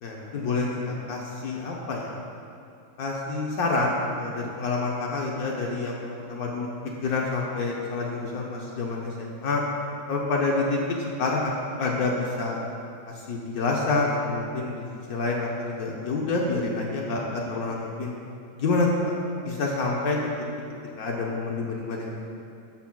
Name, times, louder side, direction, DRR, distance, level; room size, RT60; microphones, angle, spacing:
voice 1, 0.0-2.1 3.0-6.7 7.0-9.6 10.1-10.8 11.2-12.6 13.3-18.1 18.5-18.9 19.4-20.2 21.0-22.1, left 3 dB, 70° left, -2 dB, 0.8 m, -28 dB
12.5 x 5.8 x 2.3 m, 2.5 s
omnidirectional pair, 2.4 m